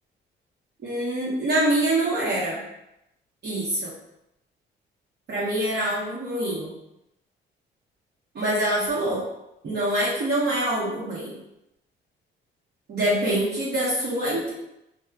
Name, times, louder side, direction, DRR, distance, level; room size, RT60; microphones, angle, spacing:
voice 1, 0.8-2.6 3.4-3.9 5.3-6.7 8.3-9.2 9.6-11.4 12.9-14.5, right 1 dB, 55° right, -7 dB, 0.9 m, -25 dB
3.1 x 2.1 x 2.3 m, 0.86 s
cardioid pair, 90°, 20 cm